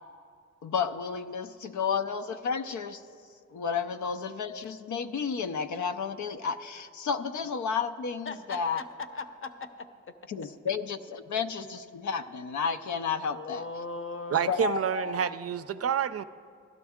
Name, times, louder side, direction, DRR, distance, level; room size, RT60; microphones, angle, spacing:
voice 1, 0.6-3.0 3.5-8.8 10.3-13.6 14.5-15.3, left 6 dB, 80° left, 9 dB, 0.6 m, -32 dB
voice 2, 8.3-10.2 13.3-14.7, left 3 dB, 45° left, 9 dB, 0.8 m, -39 dB
voice 3, 14.3-16.2, right 8 dB, 55° right, 13 dB, 0.4 m, -28 dB
16.0 x 12.0 x 3.6 m, 2.3 s
cardioid pair, 85°, 29 cm